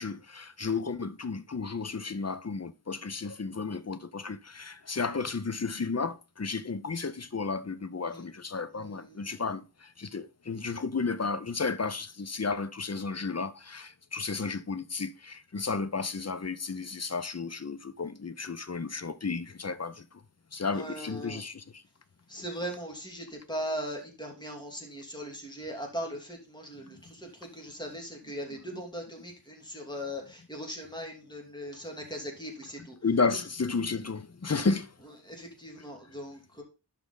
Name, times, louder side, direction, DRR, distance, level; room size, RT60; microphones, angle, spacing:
voice 1, 0.0-20.1 20.5-21.8 22.4-22.5 28.5-28.8 29.8-29.9 32.8-34.9, left 4 dB, 40° left, 0.7 m, -33 dB
voice 2, 8.8-9.4 20.7-21.4 22.3-33.0 35.3-36.6, equal, 10° left, 2.9 m, -39 dB
11.5 x 5.1 x 4.0 m
wide cardioid pair, 60°, 42 cm